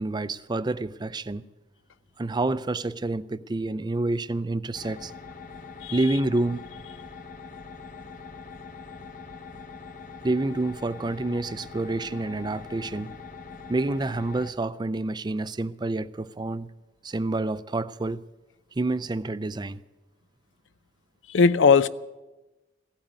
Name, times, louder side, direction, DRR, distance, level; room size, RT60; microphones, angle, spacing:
voice 1, 0.0-1.5 2.2-5.1 5.9-6.6 10.2-13.1 13.7-16.7 17.0-18.2 18.8-19.8, right 2 dB, 25° right, 0.4 m, -28 dB
sound 1, 4.7-14.5, left 4 dB, 45° left, 0.9 m, -43 dB
voice 2, 21.3-21.9, left 5 dB, 85° left, 0.5 m, -18 dB
15.5 x 8.8 x 9.5 m
head